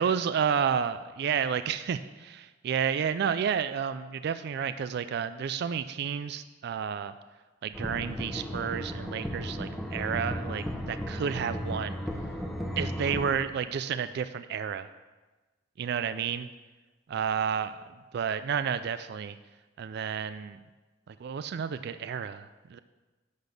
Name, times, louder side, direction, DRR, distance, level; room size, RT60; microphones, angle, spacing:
voice 1, 0.0-7.1 7.6-12.0 12.8-14.9 15.8-16.5 17.1-17.8 18.1-19.4 19.8-20.6 21.1-22.8, right 7 dB, 60° right, 12 dB, 0.3 m, -31 dB
sound 1, 7.7-13.3, equal, ahead, 0.9 m, -35 dB
10.5 x 4.1 x 6.6 m, 1.2 s
head